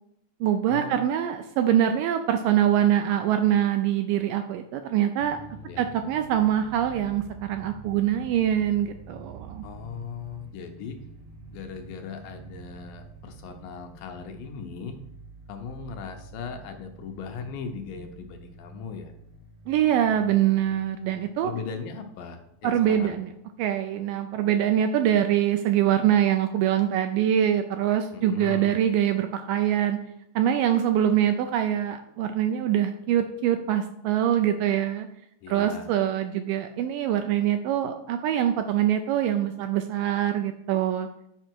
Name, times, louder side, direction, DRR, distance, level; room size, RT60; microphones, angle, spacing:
voice 1, 0.4-5.4 5.8-9.6 19.7-21.5 22.6-23.3 23.6-30.0 30.4-35.1 35.5-41.1, right 10 dB, 80° right, 7 dB, 2.0 m, -24 dB
sound 1, 5.2-23.2, right 3 dB, 60° right, 1.6 m, -47 dB
voice 2, 9.6-11.0 11.5-15.0 15.5-19.1 21.4-23.2 28.1-28.8 35.4-35.9, left 6 dB, 75° left, 5 dB, 2.2 m, -38 dB
11.0 x 5.1 x 4.5 m, 0.78 s
omnidirectional pair, 4.3 m